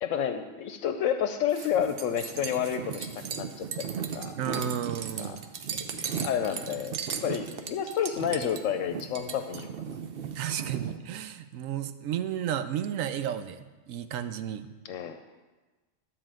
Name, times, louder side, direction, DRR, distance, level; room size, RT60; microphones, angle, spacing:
voice 1, 0.0-4.4 5.2-5.4 5.8-5.9 6.2-9.7 14.8-15.2, left 8 dB, 80° left, 8 dB, 0.9 m, -30 dB
sound 1, 1.5-11.0, right 7 dB, 55° right, 0.8 m, -36 dB
voice 2, 4.4-5.4 10.3-13.6 13.9-14.7, right 9 dB, 85° right, 11 dB, 1.0 m, -32 dB
12.5 x 4.5 x 7.5 m, 1.2 s
omnidirectional pair, 1.3 m